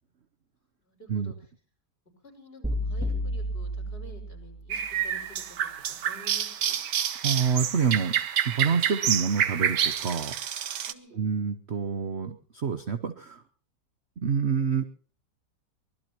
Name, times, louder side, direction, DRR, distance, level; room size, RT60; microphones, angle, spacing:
voice 1, 0.8-1.3 2.2-6.8 10.9-11.2, left 1 dB, 30° left, 1 dB, 6.1 m, -50 dB
sound 1, 2.6-4.7, equal, 5° right, 3.0 m, -31 dB
sound 2, 4.7-10.9, right 9 dB, 70° right, 1.6 m, -28 dB
voice 2, 7.2-8.2 8.4-10.3 11.1-13.4 14.2-14.8, right 6 dB, 45° right, 8 dB, 1.0 m, -27 dB
24.0 x 20.0 x 3.0 m, 0.43 s
omnidirectional pair, 1.9 m